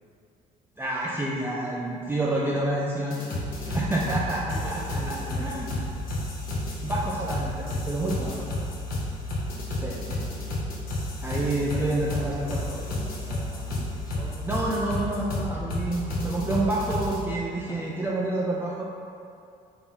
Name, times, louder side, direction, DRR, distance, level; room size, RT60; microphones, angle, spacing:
voice 1, 0.8-3.2 3.7-4.8 5.1-5.7 6.8-8.3 9.8-10.0 11.2-12.6 14.4-18.8, right 2 dB, 15° right, -5 dB, 0.3 m, -28 dB
sound 1, 3.1-17.2, left 1 dB, 60° left, 0.9 m, -31 dB
voice 2, 3.5-5.6 8.2-8.5 9.5-9.7 11.3-14.4 17.7-17.9, equal, 25° left, -4 dB, 0.8 m, -43 dB
4.0 x 2.8 x 3.8 m, 2.5 s
cardioid pair, 110°, 17 cm